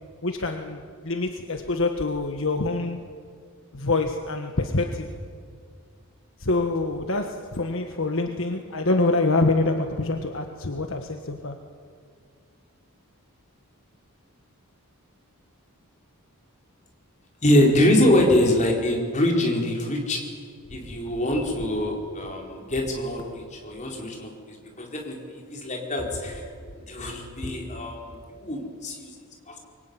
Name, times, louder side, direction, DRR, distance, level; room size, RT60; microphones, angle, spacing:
voice 1, 0.2-3.0 3.7-5.1 6.4-11.6 20.7-20.8, left 2 dB, 60° left, 5 dB, 1.5 m, -26 dB
voice 2, 17.4-20.4 20.7-29.1 29.5-29.6, left 1 dB, 35° left, 0 dB, 4.7 m, -24 dB
24.0 x 23.5 x 9.6 m, 2.1 s
head